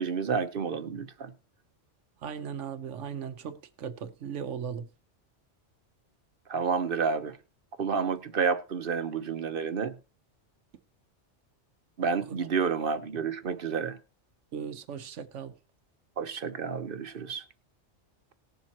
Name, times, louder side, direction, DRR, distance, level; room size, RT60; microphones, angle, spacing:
voice 1, 0.0-1.3 6.5-7.4 7.8-9.9 12.0-14.0 16.2-17.4, right 6 dB, 50° right, 1.0 m, -30 dB
voice 2, 2.2-4.9 14.5-15.5, right 7 dB, 80° right, 1.1 m, -37 dB
19.0 x 7.4 x 2.9 m
omnidirectional pair, 1.2 m